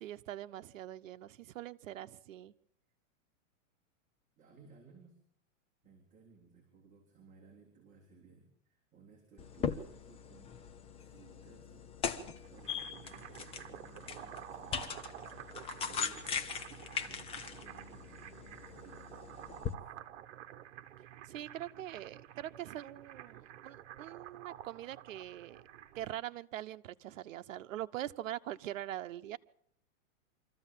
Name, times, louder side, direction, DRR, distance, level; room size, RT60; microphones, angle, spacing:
voice 1, 0.0-2.5 21.2-25.6 25.9-29.4, right 13 dB, 75° right, 11 dB, 1.1 m, -43 dB
voice 2, 4.4-5.2 5.8-15.5 15.8-16.6 17.0-19.9, right 5 dB, 20° right, -2 dB, 3.5 m, -60 dB
sound 1, 9.4-19.7, left 7 dB, 15° left, 0.8 m, -40 dB
sound 2, 12.3-26.2, right 11 dB, 60° right, 1.6 m, -51 dB
25.0 x 14.0 x 7.6 m, 0.67 s
supercardioid pair, 155°, 39 cm